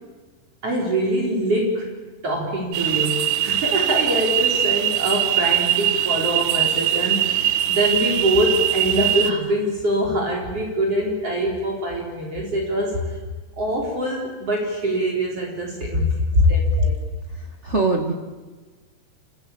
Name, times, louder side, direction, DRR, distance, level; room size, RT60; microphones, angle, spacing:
voice 1, 0.6-1.9 2.2-13.0 13.6-16.1 16.5-17.0, right 1 dB, 35° right, -1 dB, 4.9 m, -24 dB
sound 1, 2.7-9.3, right 11 dB, 70° right, 1.8 m, -21 dB
voice 2, 17.6-18.1, equal, 55° right, 2 dB, 0.7 m, -18 dB
27.5 x 17.5 x 8.7 m, 1.3 s
omnidirectional pair, 4.7 m